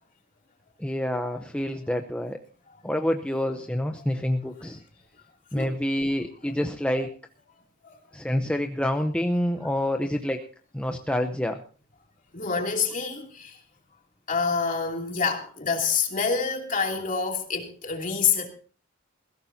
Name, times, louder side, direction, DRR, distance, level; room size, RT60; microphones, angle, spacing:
voice 1, 0.8-2.4 2.8-4.8 5.5-7.1 8.1-10.4 10.7-11.6, left 1 dB, 5° left, 0.7 m, -27 dB
voice 2, 12.3-13.6 14.3-18.5, left 5 dB, 40° left, 2.9 m, -27 dB
19.5 x 16.5 x 2.8 m
head